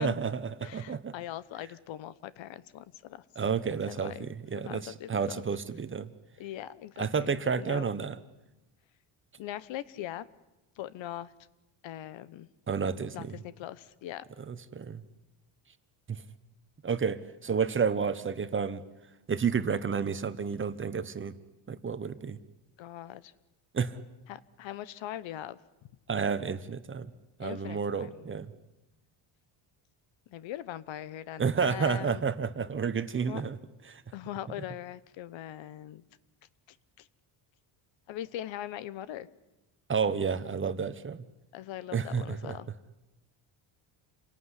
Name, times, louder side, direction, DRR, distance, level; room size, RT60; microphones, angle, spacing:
voice 1, 0.0-1.1 3.4-6.1 7.0-8.2 12.7-13.4 14.5-15.0 16.1-16.2 16.8-18.8 19.3-21.4 21.7-22.4 23.7-24.0 26.1-27.1 27.4-28.5 31.4-33.6 33.9-34.0 39.9-41.2 41.9-42.6, right 6 dB, 25° right, 12 dB, 1.2 m, -30 dB
voice 2, 0.6-3.2 3.9-4.3 4.6-5.4 6.4-7.9 9.4-10.3 10.8-11.3 11.8-12.5 13.1-14.2 22.8-23.3 24.3-25.6 27.4-28.4 30.3-32.2 33.3-33.4 34.1-36.0 37.0-37.1 38.1-39.3 41.5-42.7, left 12 dB, 70° left, 17 dB, 1.2 m, -41 dB
28.0 x 18.0 x 9.9 m, 1.0 s
cardioid pair, 125°, 47 cm